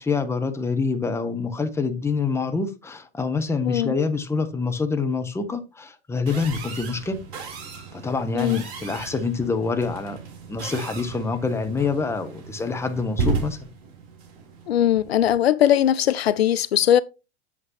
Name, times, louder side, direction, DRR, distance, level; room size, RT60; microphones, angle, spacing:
voice 1, 0.0-7.2 7.9-10.2 10.5-13.7, left 4 dB, 10° left, 1.0 m, -26 dB
sound 1, 6.3-15.4, right 4 dB, 50° right, 3.8 m, -34 dB
voice 2, 14.7-17.0, left 11 dB, 75° left, 0.5 m, -20 dB
7.8 x 7.8 x 3.1 m
figure-of-eight pair, 95°, 32 cm